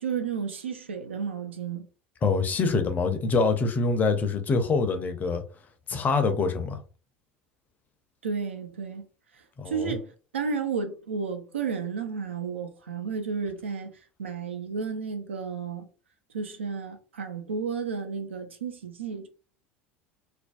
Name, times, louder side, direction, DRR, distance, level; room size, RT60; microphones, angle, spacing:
voice 1, 0.0-1.9 8.2-9.1 9.7-13.9 14.2-15.9 16.3-19.3, right 5 dB, 75° right, 0.4 m, -32 dB
voice 2, 2.2-5.4 5.9-6.8 9.6-10.0, left 4 dB, 25° left, 0.5 m, -25 dB
2.5 x 2.1 x 2.3 m
figure-of-eight pair, 70°, 6 cm